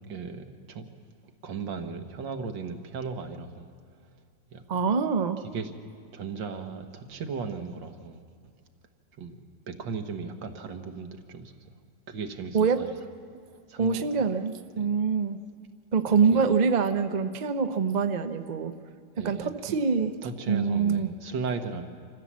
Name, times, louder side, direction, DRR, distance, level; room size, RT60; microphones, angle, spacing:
voice 1, 0.1-0.9 1.4-3.7 4.5-4.9 5.5-5.8 6.1-8.2 9.2-9.4 9.7-11.5 12.1-12.9 13.7-14.2 14.8-14.9 16.3-16.5 19.2-19.8 20.2-21.8, right 5 dB, 85° right, 6 dB, 2.0 m, -36 dB
voice 2, 4.7-5.4 12.5-12.8 13.8-15.4 15.9-18.7 19.2-20.1 20.5-21.1, right 5 dB, 45° right, 8 dB, 0.5 m, -25 dB
26.5 x 14.5 x 7.4 m, 2.2 s
omnidirectional pair, 1.9 m